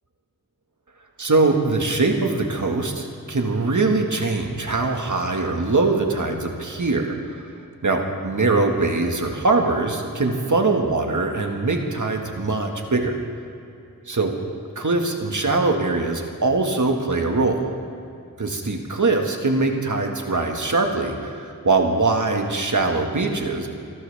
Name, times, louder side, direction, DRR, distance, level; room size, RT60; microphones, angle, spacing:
voice 1, 1.2-7.5 7.8-13.2 14.1-14.3 14.8-17.7 18.4-23.7, right 3 dB, 60° right, 3 dB, 1.8 m, -22 dB
30.0 x 12.0 x 3.5 m, 2.6 s
wide cardioid pair, 50°, 34 cm